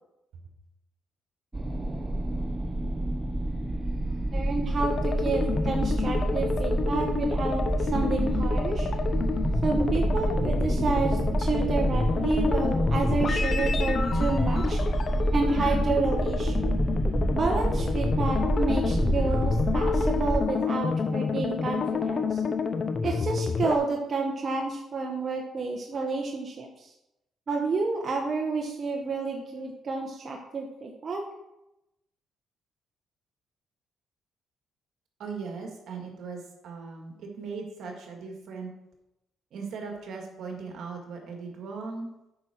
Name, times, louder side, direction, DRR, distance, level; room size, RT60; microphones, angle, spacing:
sound 1, 1.5-20.4, right 1 dB, 20° right, 0.9 m, -28 dB
voice 1, 4.3-8.9 9.6-14.8 15.3-16.8 17.3-22.4 23.0-26.9 27.5-31.2, right 3 dB, 45° right, 1 dB, 1.2 m, -30 dB
sound 2, 4.8-23.8, left 5 dB, 45° left, 0.7 m, -29 dB
voice 2, 35.2-38.7 39.5-42.1, right 4 dB, 75° right, 2 dB, 2.0 m, -38 dB
8.8 x 5.6 x 4.6 m, 0.89 s
cardioid pair, 90°, 0 cm